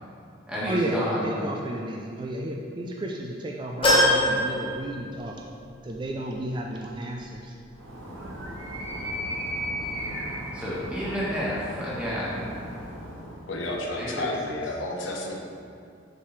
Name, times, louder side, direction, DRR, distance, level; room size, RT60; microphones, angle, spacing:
voice 1, 0.5-1.3 10.5-12.5 13.9-14.3, equal, 5° right, -8 dB, 1.4 m, -30 dB
voice 2, 1.2-5.5 5.8-7.5, right 1 dB, 25° right, 0 dB, 0.4 m, -32 dB
sound 1, 3.8-5.5 5.9-6.0 7.2-7.3, left 1 dB, 30° left, 1.3 m, -23 dB
Animal, 7.7-13.6, equal, 85° right, 0.9 m, -35 dB
voice 3, 13.5-15.4, left 2 dB, 80° left, -1 dB, 0.8 m, -31 dB
6.6 x 4.6 x 3.1 m, 2.4 s
head